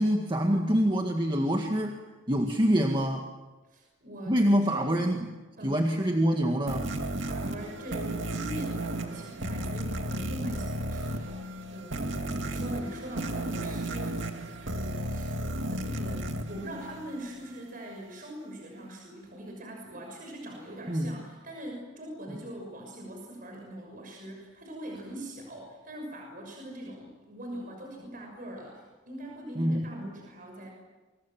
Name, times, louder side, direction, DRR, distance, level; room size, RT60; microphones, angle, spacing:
voice 1, 0.0-2.0 2.3-3.3 4.3-5.3 5.6-6.9 20.9-21.1 22.3-22.4 29.6-29.8, equal, 25° right, 3 dB, 1.9 m, -25 dB
voice 2, 3.6-5.0 5.6-5.8 7.2-14.3 14.6-15.3 15.7-30.7, right 1 dB, 45° right, 1 dB, 6.5 m, -42 dB
sound 1, 6.7-17.5, right 1 dB, 65° right, 2.5 m, -34 dB
28.5 x 26.0 x 7.5 m, 1.2 s
head